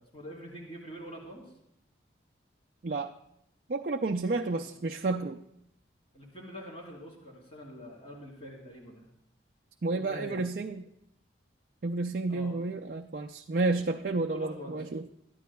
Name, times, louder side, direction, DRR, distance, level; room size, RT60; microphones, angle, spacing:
voice 1, 0.0-1.4 4.6-4.7 6.1-9.0 9.9-10.5 12.3-12.6 14.3-14.8, equal, 30° left, -3 dB, 3.9 m, -44 dB
voice 2, 3.7-5.4 9.8-10.9 11.8-15.0, right 3 dB, 50° right, 4 dB, 0.4 m, -31 dB
21.5 x 12.5 x 2.3 m, 0.78 s
head